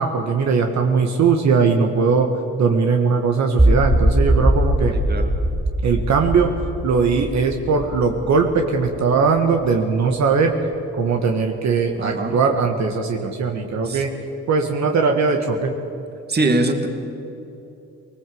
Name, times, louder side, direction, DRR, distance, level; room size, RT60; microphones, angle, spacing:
voice 1, 0.0-4.9 5.8-6.5 6.8-10.5 10.9-14.1 14.5-15.7, right 5 dB, 65° right, 3 dB, 1.8 m, -19 dB
sound 1, 3.6-9.7, right 1 dB, 10° right, 4.1 m, -21 dB
voice 2, 12.0-12.4 13.9-14.0 16.3-16.9, right 2 dB, 35° right, 6 dB, 2.4 m, -22 dB
21.0 x 19.5 x 7.9 m, 2.9 s
cardioid pair, 90°, 30 cm